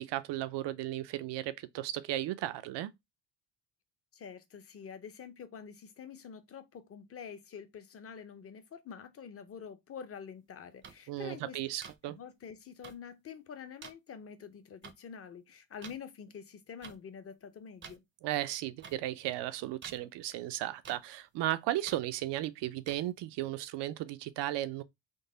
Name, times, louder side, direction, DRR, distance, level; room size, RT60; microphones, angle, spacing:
voice 1, 0.0-2.9 11.1-12.2 18.2-24.8, right 14 dB, 75° right, 0.5 m, -35 dB
voice 2, 4.1-11.6 12.0-18.0, left 7 dB, 35° left, 0.6 m, -47 dB
sound 1, 10.8-10.9 11.8-11.9 12.8-12.9 13.8-13.9 14.8-14.9 15.8-16.0 16.8-17.0 17.8-18.0 18.8-19.0 19.8-20.0 20.8-21.0 21.9-22.0 22.9-23.0, right 6 dB, 30° right, 0.5 m, -47 dB
3.8 x 2.0 x 3.7 m
cardioid pair, 110°, 43 cm